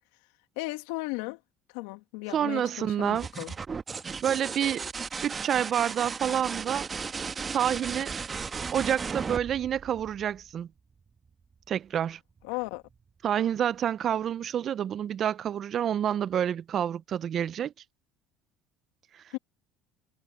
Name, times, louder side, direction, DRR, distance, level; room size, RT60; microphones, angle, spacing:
voice 1, 0.6-1.4 1.7-3.5 12.4-12.8 19.3-19.4, left 23 dB, 80° left, 2.5 m, -35 dB
voice 2, 2.3-3.3 4.2-4.8 5.2-6.9 7.5-8.1 8.7-10.7 11.7-12.2 13.2-17.7, right 9 dB, 50° right, 0.7 m, -28 dB
sound 1, 3.0-10.6 12.4-12.9, right 5 dB, 30° right, 1.4 m, -35 dB
supercardioid pair, 85°, 0 cm